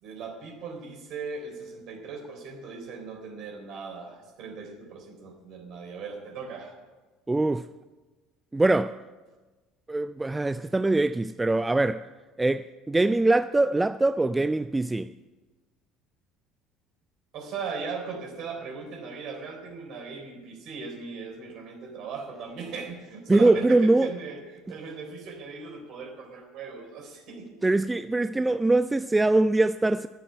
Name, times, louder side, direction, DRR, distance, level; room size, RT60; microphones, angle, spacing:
voice 1, 0.0-6.7 17.3-27.6, right 5 dB, 55° right, 3.8 m, -38 dB
voice 2, 7.3-7.7 8.5-9.0 9.9-12.1 12.4-15.1 23.3-24.1 27.6-30.1, right 2 dB, 15° right, 0.3 m, -23 dB
11.5 x 9.1 x 8.6 m
hypercardioid pair, 65°, 0 cm